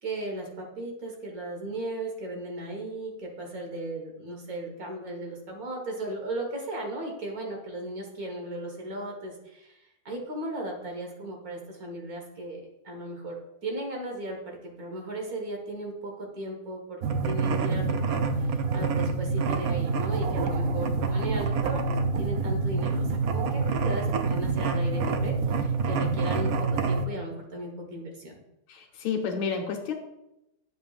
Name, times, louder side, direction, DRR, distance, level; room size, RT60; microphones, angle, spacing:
voice 1, 0.0-9.8 10.0-28.3, right 1 dB, 50° right, 1 dB, 1.8 m, -36 dB
sound 1, 17.0-27.1, right 4 dB, 85° right, 0.8 m, -27 dB
voice 2, 28.7-29.9, left 6 dB, 80° left, 3 dB, 1.7 m, -30 dB
9.2 x 7.1 x 2.4 m, 0.89 s
omnidirectional pair, 2.2 m